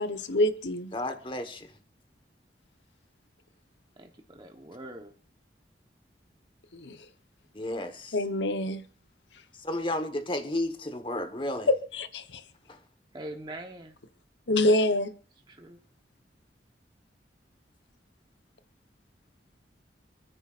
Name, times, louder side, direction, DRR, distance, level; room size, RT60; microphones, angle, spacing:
voice 1, 0.0-0.9 6.7-7.1 8.1-8.8 11.9-12.4 14.5-15.1, left 1 dB, 85° left, 1.0 m, -26 dB
voice 2, 0.9-1.7 7.5-8.2 9.6-11.7 12.7-12.8, left 1 dB, 30° left, 1.2 m, -32 dB
voice 3, 4.0-5.1 13.1-14.0 15.5-15.8, right 1 dB, 25° right, 1.0 m, -43 dB
28.0 x 10.0 x 2.5 m
head